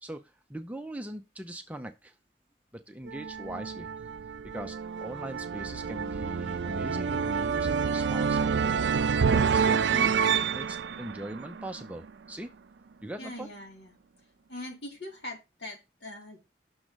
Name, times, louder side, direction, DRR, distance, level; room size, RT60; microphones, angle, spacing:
voice 1, 0.0-2.1 2.7-3.9 4.5-8.8 9.3-10.2 10.5-12.5 13.0-13.5, right 1 dB, 10° right, 6 dB, 0.5 m, -41 dB
sound 1, 3.1-12.1, right 6 dB, 75° right, 0.4 m, -28 dB
voice 2, 13.2-14.0 14.5-16.5, left 1 dB, 70° left, 0 dB, 2.6 m, -42 dB
6.3 x 3.8 x 6.2 m, 0.24 s
head